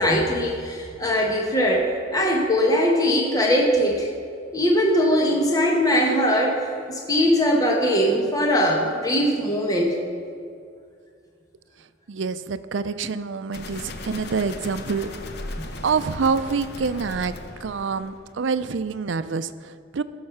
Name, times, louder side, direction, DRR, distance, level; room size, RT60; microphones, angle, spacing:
voice 1, 0.0-4.1 4.5-10.0 15.6-15.7, equal, 20° left, 0 dB, 1.2 m, -21 dB
voice 2, 12.1-15.1 15.5-17.3 17.6-20.0, right 5 dB, 75° right, 13 dB, 0.5 m, -27 dB
sound 1, 13.5-18.4, left 2 dB, 60° left, 0.9 m, -37 dB
14.5 x 6.4 x 5.8 m, 2.2 s
head